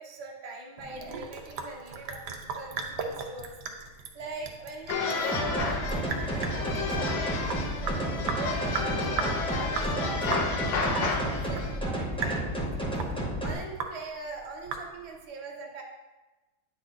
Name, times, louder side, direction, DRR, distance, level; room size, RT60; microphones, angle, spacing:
voice 1, 0.0-3.6 3.9-12.7 13.4-15.8, right 3 dB, 30° right, -2 dB, 0.8 m, -41 dB
Sink (filling or washing) / Drip, 0.8-15.2, right 5 dB, 80° right, 1.3 m, -38 dB
sound 1, 4.9-11.8, left 4 dB, 80° left, 1.3 m, -32 dB
sound 2, 5.3-13.5, right 1 dB, 5° left, 0.4 m, -32 dB
8.9 x 4.2 x 3.6 m, 1.2 s
omnidirectional pair, 1.7 m